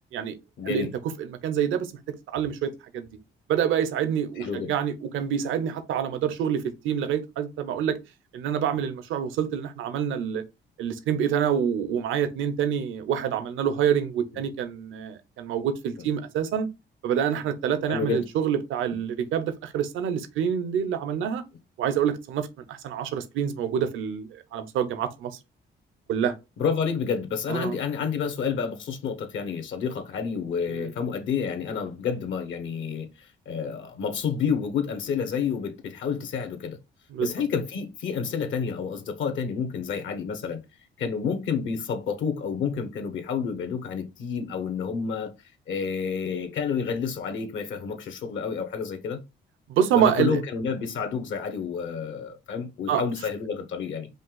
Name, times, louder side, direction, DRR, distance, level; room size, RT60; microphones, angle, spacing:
voice 1, 0.6-0.9 4.4-4.7 17.9-18.2 26.6-36.8 37.2-40.6 41.0-45.3 45.7-49.2 49.9-54.1, left 6 dB, 75° left, 1.1 m, -29 dB
voice 2, 1.2-1.9 2.3-3.1 3.5-8.0 8.3-10.4 10.8-16.7 17.0-21.4 21.8-25.4 26.1-26.3 27.5-27.7 30.7-30.9 37.1-37.3 49.7-50.4 52.9-53.0, right 8 dB, 85° right, 0.7 m, -27 dB
5.2 x 2.5 x 3.8 m
cardioid pair, 90°, 20 cm